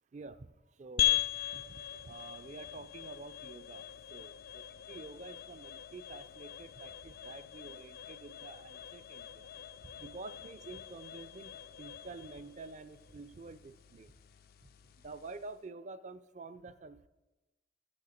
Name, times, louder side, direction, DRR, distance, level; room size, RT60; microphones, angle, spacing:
voice 1, 0.1-0.5 0.8-1.8 2.0-3.8 4.1-9.5 9.8-11.5 11.8-14.1 15.0-17.1, right 3 dB, 40° right, 12 dB, 0.4 m, -49 dB
sound 1, 1.0-15.6, left 12 dB, 55° left, 0.3 m, -40 dB
15.5 x 6.5 x 4.3 m, 1.1 s
head